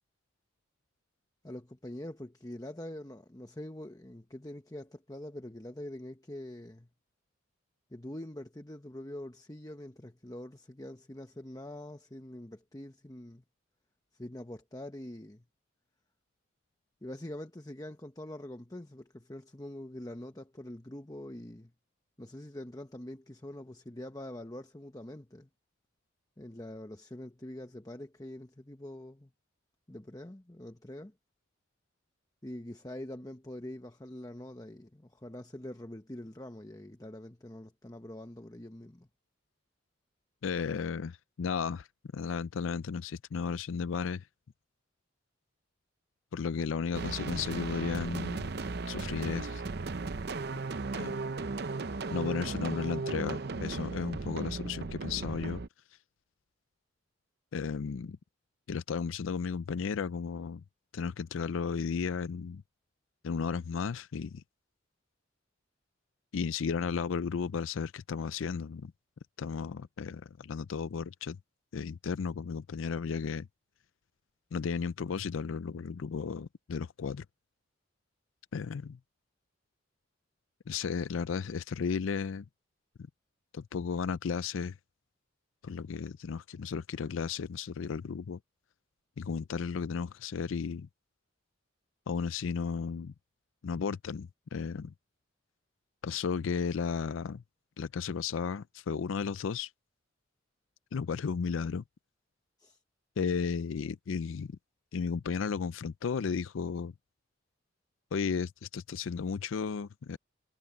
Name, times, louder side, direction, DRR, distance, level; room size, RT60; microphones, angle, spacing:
voice 1, 1.4-6.9 7.9-13.4 14.1-15.4 17.0-21.7 22.2-25.5 26.4-29.3 29.9-31.1 32.4-39.1 102.6-102.8, left 1 dB, 20° left, 1.0 m, -44 dB
voice 2, 40.4-41.9 42.1-44.3 46.3-48.5 48.9-49.6 50.9-51.1 52.1-55.6 57.5-58.2 58.7-60.6 60.9-62.6 63.2-64.4 66.3-68.9 69.4-71.4 71.7-73.5 74.5-77.2 78.5-79.0 80.7-82.4 83.5-84.8 85.6-88.4 89.2-90.9 92.1-93.1 93.6-94.9 96.0-97.4 97.8-99.7 100.9-101.8 103.2-104.5 104.9-106.9 108.1-110.2, left 5 dB, 85° left, 0.4 m, -34 dB
sound 1, 46.9-55.7, right 3 dB, 55° right, 0.7 m, -36 dB
head